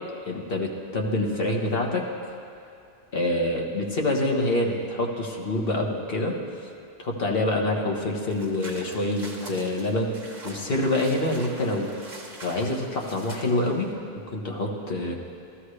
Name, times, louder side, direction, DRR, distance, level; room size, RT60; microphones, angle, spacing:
voice 1, 0.3-2.0 3.1-6.4 7.0-10.1 10.4-11.9 12.4-13.9 14.3-15.1, left 1 dB, 60° left, 0 dB, 1.5 m, -26 dB
sound 1, 8.3-13.9, right 1 dB, 45° right, 1.4 m, -43 dB
15.5 x 13.0 x 3.3 m, 2.5 s
omnidirectional pair, 1.1 m